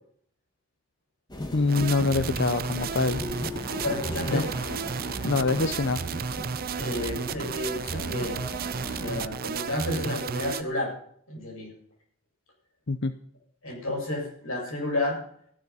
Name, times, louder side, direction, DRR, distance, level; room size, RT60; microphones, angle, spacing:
sound 1, 1.3-9.3, left 1 dB, 20° left, 2.1 m, -38 dB
voice 1, 1.5-3.2 4.3-4.4 5.2-6.0 12.9-13.1, left 3 dB, 60° left, 10 dB, 0.7 m, -25 dB
sound 2, 1.7-10.6, right 6 dB, 45° right, 0.5 m, -33 dB
voice 2, 3.6-4.5 5.5-5.7 6.8-8.4 8.9-10.9 11.3-11.7 13.6-15.2, left 1 dB, 85° left, -1 dB, 7.7 m, -31 dB
15.0 x 12.0 x 5.6 m, 0.64 s
head